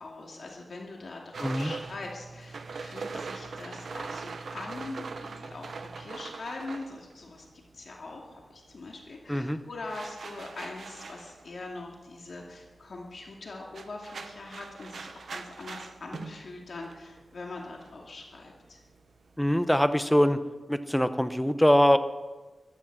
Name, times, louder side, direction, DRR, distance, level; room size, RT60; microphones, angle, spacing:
voice 1, 0.0-18.8, left 2 dB, 65° left, -1 dB, 2.3 m, -42 dB
sound 1, 1.3-8.0 8.3-19.9, right 4 dB, 75° right, 0.9 m, -42 dB
voice 2, 1.4-1.7 3.1-3.2 9.3-9.6 19.4-20.4 20.7-22.0, equal, 5° left, 10 dB, 0.8 m, -23 dB
14.5 x 12.5 x 6.1 m, 1.2 s
wide cardioid pair, 105°, 0 cm